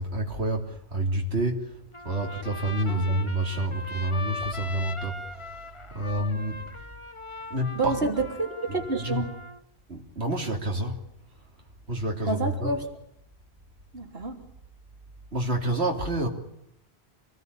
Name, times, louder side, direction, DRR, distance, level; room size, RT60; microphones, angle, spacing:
voice 1, 0.0-1.8 2.0-6.6 7.5-8.1 8.7-9.3 9.9-11.0 11.9-12.7 15.3-16.3, right 1 dB, 85° right, 3.5 m, -28 dB
Trumpet, 1.9-9.6, left 3 dB, 30° left, 1.4 m, -40 dB
voice 2, 7.7-9.3 12.2-12.8 13.9-14.4, right 3 dB, 70° right, 3.7 m, -29 dB
27.5 x 20.0 x 9.9 m
omnidirectional pair, 1.1 m